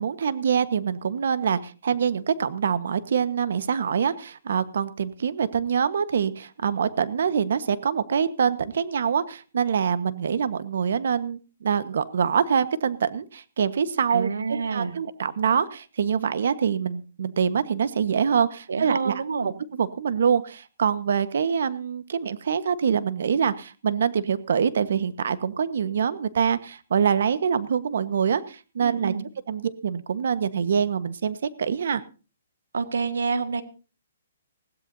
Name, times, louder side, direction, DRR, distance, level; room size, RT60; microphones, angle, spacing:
voice 1, 0.0-19.1 19.4-29.1 29.5-32.0, right 7 dB, 70° right, 13 dB, 1.3 m, -25 dB
voice 2, 14.1-14.9 18.7-19.5 28.8-29.2 32.7-33.6, right 5 dB, 90° right, 10 dB, 1.8 m, -27 dB
20.5 x 16.0 x 2.7 m, 0.34 s
hypercardioid pair, 150°, 0 cm